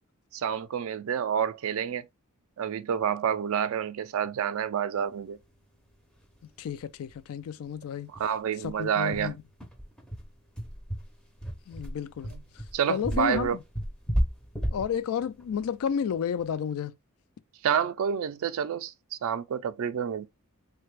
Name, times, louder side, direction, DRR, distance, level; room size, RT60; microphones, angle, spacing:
voice 1, 0.3-2.1 2.6-5.4 8.1-9.3 12.3-12.4 12.7-13.6 17.6-18.9 19.2-20.3, right 8 dB, 65° right, 0.3 m, -28 dB
sound 1, 6.2-6.3 6.6-6.7 7.1-7.2 7.6-7.7 8.1-16.6, equal, 5° left, 0.5 m, -33 dB
voice 2, 6.6-8.1 8.6-9.4 11.7-12.3 12.9-13.6 14.7-17.0, left 7 dB, 70° left, 0.3 m, -31 dB
3.2 x 2.2 x 3.1 m
head